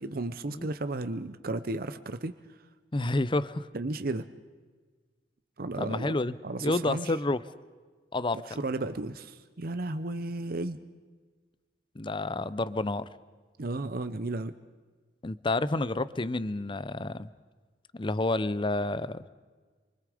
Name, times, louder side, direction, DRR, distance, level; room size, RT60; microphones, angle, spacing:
voice 1, 0.0-2.3 3.7-4.3 5.6-6.2 6.4-7.1 8.5-10.8 13.6-14.5, right 2 dB, 55° right, 11 dB, 0.8 m, -34 dB
voice 2, 2.9-3.7 5.8-6.3 6.6-7.4 8.1-8.6 11.9-13.1 15.2-17.3 17.9-19.3, left 2 dB, 30° left, 16 dB, 0.7 m, -29 dB
27.5 x 24.5 x 5.1 m, 1.4 s
head